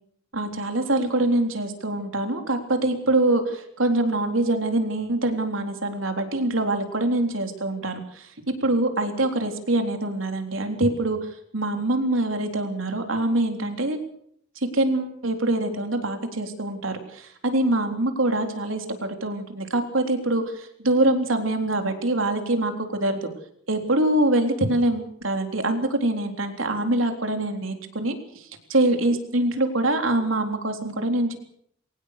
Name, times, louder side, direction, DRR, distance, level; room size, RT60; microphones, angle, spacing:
voice 1, 0.3-8.3 8.6-11.2 11.5-14.0 14.6-23.3 23.7-31.4, right 2 dB, 85° right, 5 dB, 3.7 m, -24 dB
23.0 x 18.5 x 6.7 m, 0.69 s
head